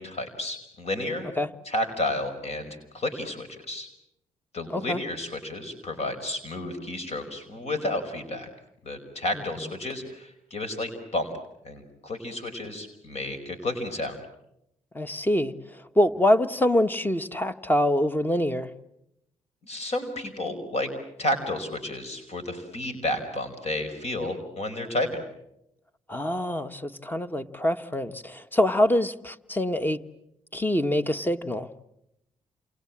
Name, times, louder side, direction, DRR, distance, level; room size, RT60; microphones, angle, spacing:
voice 1, 0.0-1.3 1.7-3.9 4.5-8.5 8.8-11.3 11.6-14.2 19.6-20.9 21.2-25.1, left 1 dB, 55° left, 8 dB, 5.3 m, -31 dB
voice 2, 4.7-5.0 14.9-18.7 26.1-30.0 30.5-31.7, left 1 dB, 15° left, 11 dB, 1.5 m, -25 dB
28.5 x 28.0 x 7.4 m, 0.81 s
supercardioid pair, 55°, 13 cm